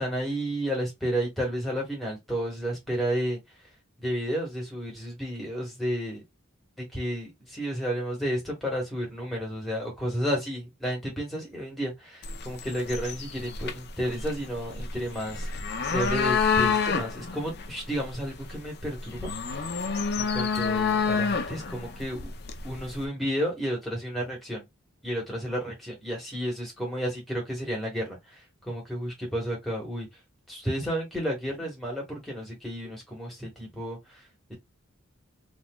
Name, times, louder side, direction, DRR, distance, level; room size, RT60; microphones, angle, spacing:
voice 1, 0.0-3.4 4.0-6.2 6.8-15.5 15.9-19.3 20.2-22.3 22.6-24.7 25.0-30.1 30.5-34.6, equal, ahead, 1.7 m, -32 dB
sound 1, 12.2-23.1, left 5 dB, 50° left, 0.6 m, -29 dB
3.6 x 3.0 x 2.3 m
head